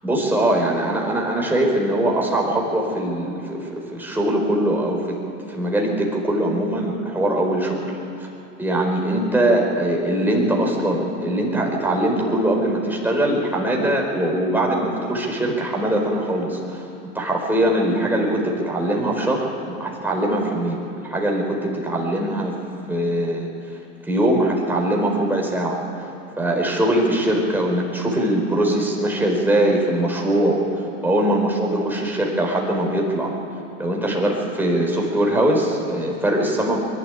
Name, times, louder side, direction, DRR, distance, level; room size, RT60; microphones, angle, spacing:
voice 1, 0.0-5.2 5.5-7.8 8.2-8.3 8.6-16.9 17.1-22.6 22.9-23.8 24.0-26.1 26.4-33.3 33.8-36.8, right 1 dB, 5° right, -1 dB, 4.5 m, -22 dB
22.0 x 12.0 x 9.9 m, 2.9 s
supercardioid pair, 115°, 40 cm